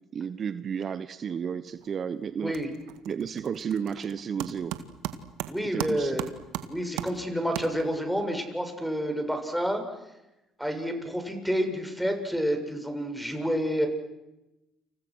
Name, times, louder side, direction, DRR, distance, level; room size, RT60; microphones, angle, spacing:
voice 1, 0.1-2.5 3.1-4.8 5.7-6.2, right 7 dB, 45° right, 13 dB, 1.2 m, -32 dB
sound 1, 1.7-2.0 2.3-8.2, right 12 dB, 75° right, 1.9 m, -38 dB
voice 2, 2.4-2.7 5.5-6.3 6.7-9.8 10.6-13.9, equal, ahead, 6 dB, 7.3 m, -29 dB
29.5 x 28.5 x 6.5 m, 0.97 s
hypercardioid pair, 60°, 0 cm